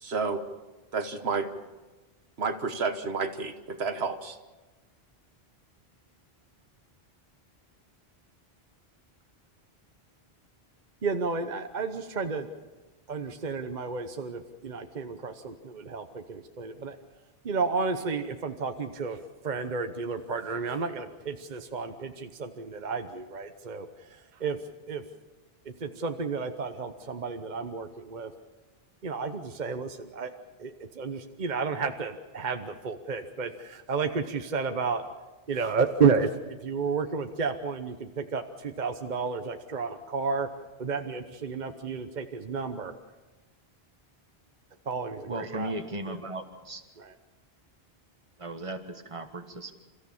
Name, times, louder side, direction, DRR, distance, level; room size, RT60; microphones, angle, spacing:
voice 1, 0.0-0.4 0.9-1.5 2.4-4.4, right 4 dB, 90° right, 8 dB, 1.5 m, -30 dB
voice 2, 11.0-12.5 13.1-17.0 17.4-19.2 19.4-23.9 24.4-24.6 24.9-25.0 25.7-28.3 29.0-30.3 30.6-35.0 35.5-40.5 40.8-42.9 44.9-45.7 46.1-46.2 47.0-47.1, right 5 dB, 50° right, 7 dB, 1.1 m, -31 dB
voice 3, 45.3-46.8 48.4-49.7, right 2 dB, 30° right, 6 dB, 1.6 m, -36 dB
29.0 x 14.5 x 7.2 m, 1.2 s
omnidirectional pair, 1.0 m